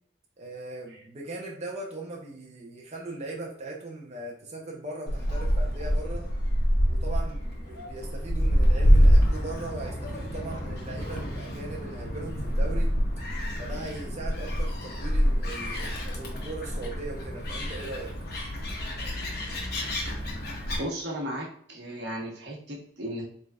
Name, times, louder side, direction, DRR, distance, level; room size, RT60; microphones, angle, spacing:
voice 1, 0.4-6.3 6.9-13.0 13.6-18.1, right 2 dB, 40° right, -1 dB, 0.6 m, -39 dB
Gull seagull, 5.1-20.8, equal, 60° left, 0.9 m, -26 dB
voice 2, 20.8-23.3, equal, 85° right, -2 dB, 1.0 m, -35 dB
3.7 x 3.3 x 2.3 m, 0.62 s
head